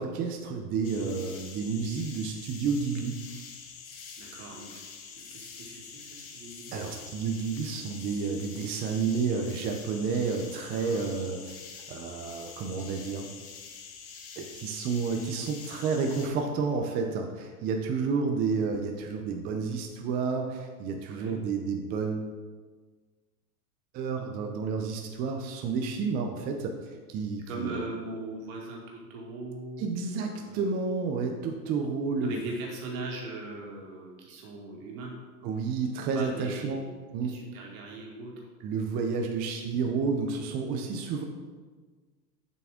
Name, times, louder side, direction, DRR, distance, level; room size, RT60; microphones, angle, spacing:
voice 1, 0.0-3.2 6.7-11.6 11.9-13.3 14.4-22.3 23.9-26.7 27.1-27.8 29.8-32.4 35.4-36.8 37.1-37.4 38.6-41.2, right 5 dB, 20° right, 3 dB, 0.3 m, -30 dB
sound 1, 0.8-16.3, left 6 dB, 50° left, 1.2 m, -46 dB
voice 2, 4.2-4.8 5.2-6.8 10.7-11.1 21.1-21.4 27.5-29.9 30.3-30.7 32.2-35.1 36.1-38.3, right 2 dB, 55° right, -1 dB, 2.2 m, -40 dB
7.0 x 6.1 x 3.5 m, 1.4 s
hypercardioid pair, 115°, 49 cm